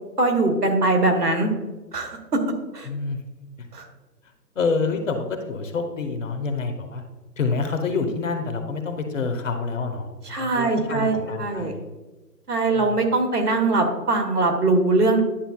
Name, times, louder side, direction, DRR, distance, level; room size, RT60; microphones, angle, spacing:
voice 1, 0.2-1.5 1.9-2.2 2.7-2.9 3.7-3.8 10.3-11.7 12.5-15.2, right 2 dB, 70° right, 4 dB, 1.6 m, -21 dB
voice 2, 2.8-3.2 4.5-7.0 7.4-10.1 10.4-11.8 12.7-13.0, left 4 dB, 50° left, 6 dB, 1.1 m, -27 dB
10.0 x 6.9 x 2.3 m, 1.2 s
figure-of-eight pair, 150°, 49 cm